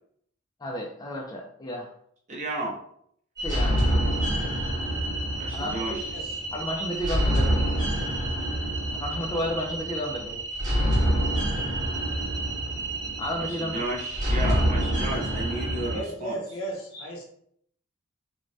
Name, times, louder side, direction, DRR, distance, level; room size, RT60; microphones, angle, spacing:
voice 1, 0.6-1.9 3.4-3.8 5.5-6.0 6.5-7.6 8.9-10.4 13.2-13.8 16.9-17.1, equal, 20° left, -1 dB, 0.3 m, -32 dB
voice 2, 2.3-2.8 5.4-6.1 13.4-16.4, right 1 dB, 35° right, -2 dB, 0.6 m, -33 dB
sound 1, 3.4-16.0, right 1 dB, 20° right, 1.1 m, -27 dB
voice 3, 15.9-17.3, right 1 dB, 85° left, -1 dB, 0.7 m, -35 dB
3.2 x 2.1 x 2.6 m, 0.67 s
head